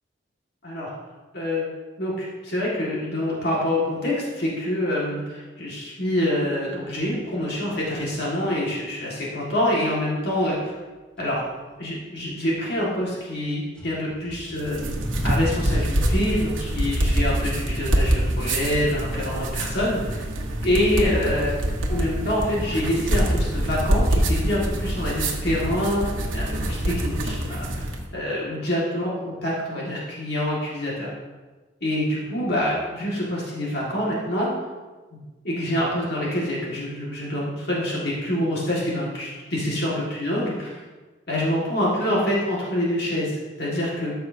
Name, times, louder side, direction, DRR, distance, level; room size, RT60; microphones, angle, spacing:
voice 1, 1.3-1.7 2.0-10.7 11.2-11.4 11.8-15.0 15.2-20.3 20.6-21.6 21.9-26.0 26.3-27.9 28.1-31.1 31.8-34.5 35.1-35.2 35.4-40.8 41.3-44.1, left 1 dB, 55° left, -5 dB, 1.9 m, -26 dB
sound 1, 11.2-11.9 12.3-13.4 13.7-22.4, right 1 dB, 5° left, 1.5 m, -39 dB
sound 2, 14.6-28.0, right 1 dB, 85° right, 1.2 m, -25 dB
13.5 x 6.8 x 2.8 m, 1.3 s
head